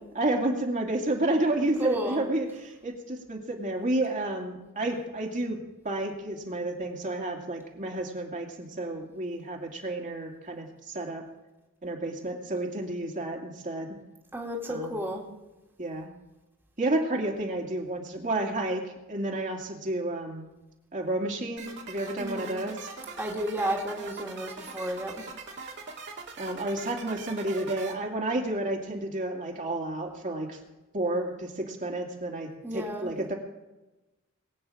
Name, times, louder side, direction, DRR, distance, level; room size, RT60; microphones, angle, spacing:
voice 1, 0.2-5.6 5.8-11.2 11.8-14.0 14.7-14.9 15.8-16.1 16.8-20.5 20.9-22.7 26.4-30.6 30.9-33.3, right 1 dB, 35° right, 0 dB, 2.3 m, -31 dB
voice 2, 1.6-2.2 14.3-15.2 22.2-22.6 23.2-25.2 32.6-33.1, right 1 dB, 10° right, -2 dB, 2.2 m, -32 dB
sound 1, 21.6-27.9, right 4 dB, 55° right, 2.3 m, -42 dB
22.0 x 8.8 x 5.0 m, 1.1 s
head